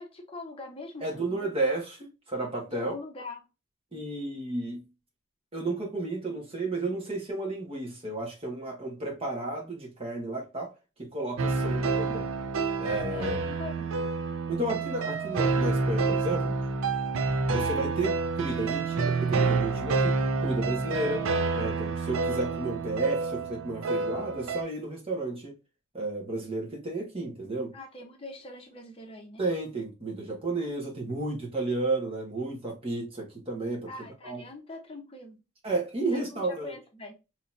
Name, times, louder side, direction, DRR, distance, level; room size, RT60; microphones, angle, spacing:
voice 1, 0.0-1.5 2.7-3.5 13.1-13.9 27.7-29.4 33.9-35.4 36.1-37.2, left 2 dB, 30° left, 0.8 m, -43 dB
voice 2, 1.0-2.9 3.9-4.8 5.5-10.7 11.0-12.3 12.8-13.4 14.5-16.6 17.5-25.5 25.9-27.7 29.4-33.9 34.2-34.4 35.6-36.7, right 2 dB, 30° right, 1.4 m, -32 dB
sound 1, 11.4-24.6, right 4 dB, 90° right, 0.5 m, -28 dB
3.8 x 3.0 x 2.5 m
head